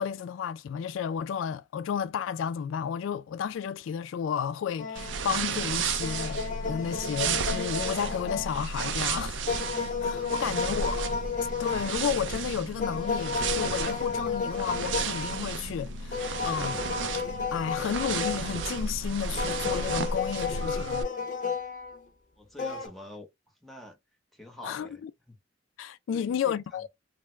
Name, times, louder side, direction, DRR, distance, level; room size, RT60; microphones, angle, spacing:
voice 1, 0.0-9.6 10.0-11.1 11.6-16.8 17.5-20.9 24.6-25.1 25.8-26.9, left 7 dB, 90° left, 0.3 m, -32 dB
Embellishments on Tar - Middle string pair, 4.8-5.5 6.0-8.9 9.5-12.4 12.8-15.5 16.1-18.9 19.4-22.0 22.6-22.9, left 5 dB, 45° left, 0.8 m, -33 dB
sound 1, 5.0-21.0, right 5 dB, 75° right, 0.5 m, -33 dB
voice 2, 10.2-10.7 22.4-24.0 24.3-25.0 25.3-25.4 26.1-26.9, left 1 dB, ahead, 0.8 m, -47 dB
3.3 x 2.1 x 3.1 m
head